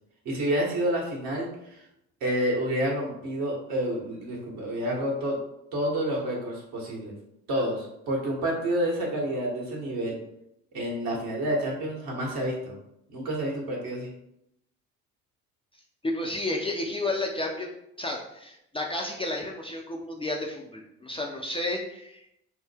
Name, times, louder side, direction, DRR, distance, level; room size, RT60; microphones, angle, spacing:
voice 1, 0.2-1.7 2.2-5.4 5.7-7.1 7.5-10.2 10.7-12.8 13.1-14.1, right 1 dB, 55° right, -2 dB, 1.5 m, -29 dB
voice 2, 16.0-22.4, left 2 dB, 15° left, 0 dB, 0.6 m, -32 dB
5.5 x 2.1 x 3.4 m, 0.80 s
figure-of-eight pair, 50°, 40 cm